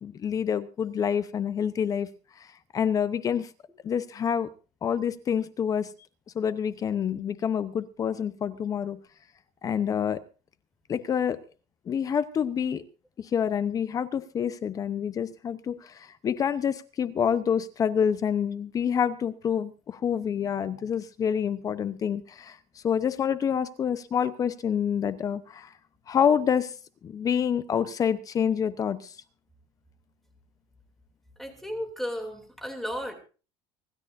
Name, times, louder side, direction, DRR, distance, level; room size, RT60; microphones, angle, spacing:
voice 1, 0.0-2.1 2.4-2.5 2.7-3.5 3.8-4.5 4.8-5.9 6.3-9.0 9.6-10.2 10.9-11.4 11.9-12.8 13.2-22.6 22.8-25.7 26.1-26.7 27.0-29.1, left 8 dB, 30° left, 14 dB, 0.8 m, -27 dB
voice 2, 31.4-33.1, equal, ahead, 5 dB, 2.8 m, -34 dB
25.0 x 12.5 x 2.6 m, 0.35 s
cardioid pair, 140°, 12 cm